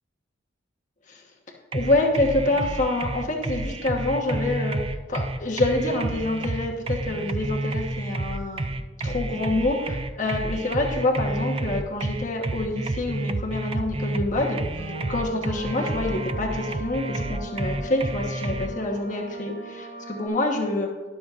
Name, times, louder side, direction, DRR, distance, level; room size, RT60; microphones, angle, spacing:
voice 1, 1.7-4.8 5.1-8.7 9.0-14.6 15.1-20.9, left 2 dB, 40° left, 0 dB, 1.1 m, -26 dB
sound 1, 1.7-18.7, right 2 dB, 30° right, 0.4 m, -30 dB
sound 2, 14.8-20.3, right 1 dB, 85° right, 3.6 m, -38 dB
13.0 x 11.0 x 2.5 m, 1.4 s
head